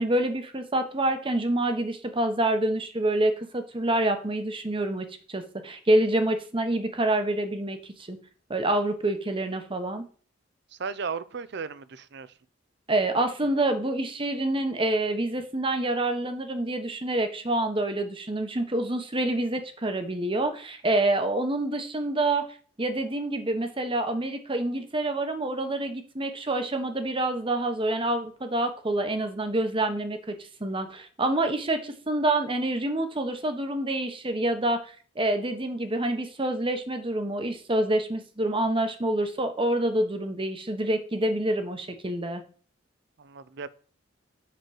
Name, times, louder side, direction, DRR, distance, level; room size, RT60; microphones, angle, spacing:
voice 1, 0.0-7.8 8.1-8.2 8.5-10.1 12.9-22.4 22.8-34.8 35.2-42.4, right 1 dB, 25° right, 1.0 m, -27 dB
voice 2, 10.7-12.3 43.2-43.7, right 5 dB, 60° right, 0.5 m, -35 dB
6.8 x 4.6 x 6.3 m
head